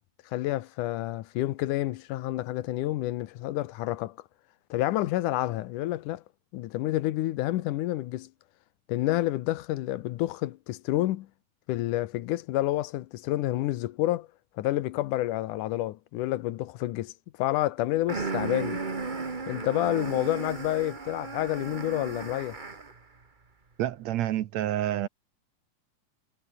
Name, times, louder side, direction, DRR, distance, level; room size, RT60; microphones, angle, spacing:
voice 1, 0.3-4.2 4.7-6.2 6.5-8.3 8.9-11.3 11.7-14.3 14.6-17.1 17.4-18.8 19.5-22.6, left 15 dB, 80° left, 2.4 m, -29 dB
sound 1, 18.1-23.0, right 4 dB, 35° right, 0.7 m, -35 dB
voice 2, 23.8-25.1, right 13 dB, 70° right, 2.0 m, -28 dB
omnidirectional pair, 3.6 m